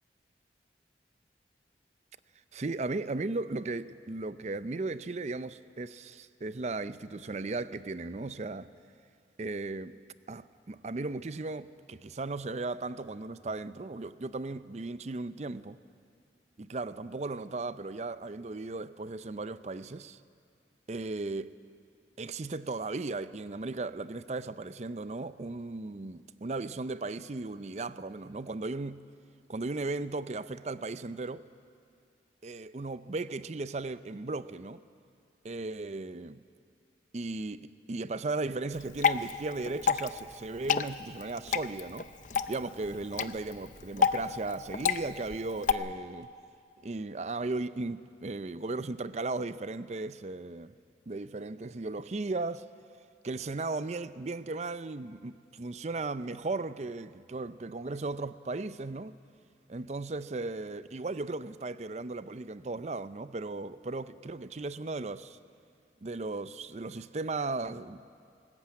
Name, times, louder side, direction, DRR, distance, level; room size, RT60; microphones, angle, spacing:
voice 1, 2.5-8.7 9.4-10.0 10.3-15.8 16.6-20.2 20.9-21.5 22.2-29.0 29.5-31.4 32.4-34.8 35.4-36.4 37.1-42.1 42.5-46.3 46.8-50.7 51.1-52.6 53.2-59.1 59.7-65.4 66.0-68.0, right 3 dB, 40° right, 0.5 m, -36 dB
Water / Drip, 38.7-45.7, left 6 dB, 45° left, 0.6 m, -31 dB
20.0 x 18.5 x 8.8 m
head